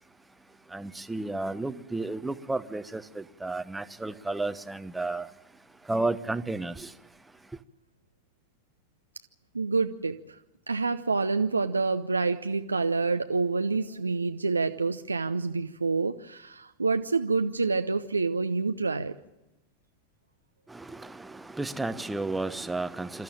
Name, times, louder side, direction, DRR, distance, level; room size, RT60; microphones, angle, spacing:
voice 1, 0.7-5.3 5.9-6.9 20.7-23.2, right 2 dB, 5° right, 1.1 m, -32 dB
voice 2, 9.5-10.4 10.7-19.1, right 4 dB, 80° right, 0.8 m, -27 dB
27.5 x 14.5 x 8.8 m
figure-of-eight pair, 90°, 0 cm